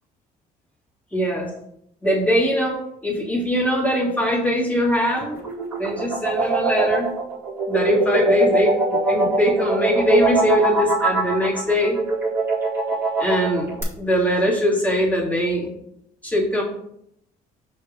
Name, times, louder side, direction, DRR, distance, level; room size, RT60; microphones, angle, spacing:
voice 1, 1.1-1.5 2.0-5.4 5.8-7.1 7.7-12.0 13.2-15.7 16.2-16.6, equal, 10° left, -4 dB, 2.3 m, -21 dB
sound 1, 5.3-13.8, right 2 dB, 15° right, 2.2 m, -22 dB
5.5 x 3.5 x 5.0 m, 0.76 s
cardioid pair, 110°, 17 cm